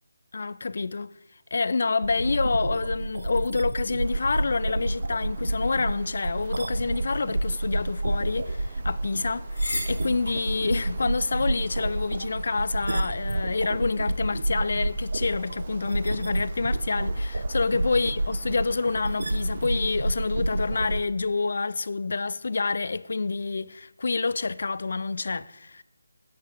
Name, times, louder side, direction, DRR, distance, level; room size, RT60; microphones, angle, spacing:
voice 1, 0.3-1.1 1.5-25.8, left 4 dB, 55° left, 0.4 m, -28 dB
sound 1, 2.0-21.0, right 1 dB, 80° right, 0.8 m, -29 dB
sound 2, 4.0-21.0, right 5 dB, 35° right, 0.7 m, -49 dB
sound 3, 6.7-13.2, left 2 dB, 80° left, 4.1 m, -41 dB
11.0 x 7.6 x 4.8 m
figure-of-eight pair, 170°, 0 cm